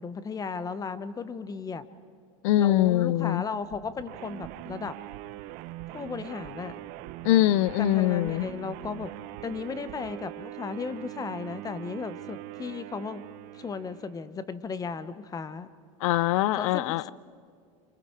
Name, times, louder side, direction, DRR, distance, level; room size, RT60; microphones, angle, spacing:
voice 1, 0.0-1.8 2.6-5.0 5.9-6.8 7.8-9.1 9.4-13.2 13.5-15.7 16.6-17.1, left 5 dB, 20° left, 0.9 m, -35 dB
voice 2, 2.4-3.4 7.2-8.5 16.0-17.1, left 14 dB, 70° left, 0.5 m, -23 dB
sound 1, 3.5-10.1, right 8 dB, 80° right, 1.9 m, -52 dB
sound 2, 4.1-14.3, right 17 dB, 55° right, 0.8 m, -42 dB
27.5 x 26.0 x 4.5 m
supercardioid pair, 115°, 17 cm